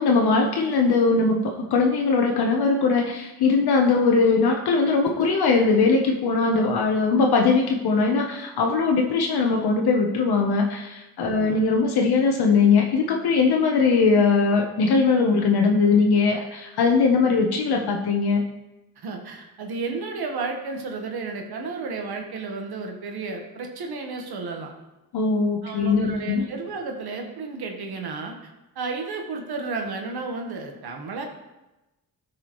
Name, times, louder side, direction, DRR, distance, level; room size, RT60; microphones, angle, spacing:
voice 1, 0.0-18.4 25.1-26.5, left 4 dB, 80° left, 2 dB, 0.9 m, -20 dB
voice 2, 11.3-11.6 19.0-24.7 25.6-31.2, right 4 dB, 80° right, 2 dB, 1.2 m, -32 dB
13.0 x 4.8 x 3.0 m, 1.0 s
wide cardioid pair, 130°, 38 cm